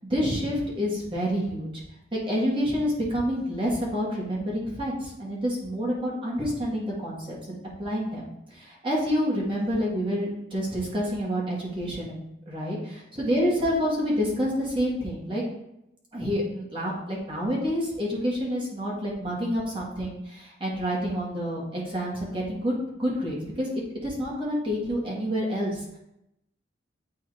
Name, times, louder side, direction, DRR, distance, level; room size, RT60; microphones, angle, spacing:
voice 1, 0.0-1.8 2.1-12.2 12.5-15.4 16.1-23.7 24.0-26.0, equal, 30° right, -5 dB, 1.7 m, -28 dB
8.3 x 2.8 x 4.9 m, 0.85 s
head